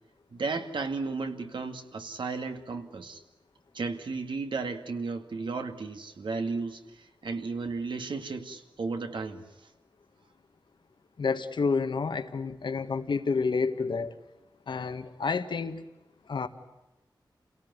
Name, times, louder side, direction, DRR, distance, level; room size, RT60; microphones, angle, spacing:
voice 1, 0.3-3.2 3.7-9.4, right 4 dB, 85° right, 6 dB, 2.3 m, -34 dB
voice 2, 11.2-14.2 14.7-15.8 16.3-16.5, left 4 dB, 80° left, 9 dB, 1.6 m, -29 dB
29.0 x 18.0 x 9.7 m, 1.0 s
wide cardioid pair, 115°, 8 cm